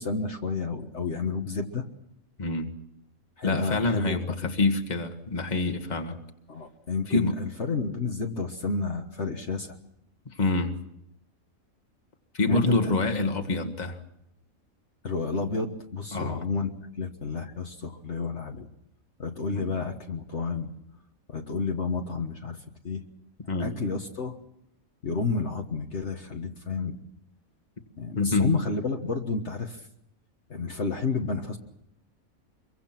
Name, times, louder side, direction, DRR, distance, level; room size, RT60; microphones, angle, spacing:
voice 1, 0.0-1.9 3.4-4.5 6.5-9.8 12.5-12.9 15.0-16.7 17.0-18.7 19.2-20.7 21.3-22.6 22.8-23.0 23.6-24.4 25.0-27.0 28.0-29.9 30.5-31.6, left 4 dB, 55° left, 3 dB, 1.8 m, -30 dB
voice 2, 2.4-2.7 3.4-6.2 7.1-7.4 10.3-10.8 12.3-14.0 16.1-16.5 19.5-19.7 23.5-23.8 28.2-28.6, left 2 dB, 30° left, 5 dB, 1.8 m, -26 dB
25.0 x 23.5 x 6.0 m, 0.79 s
omnidirectional pair, 1.5 m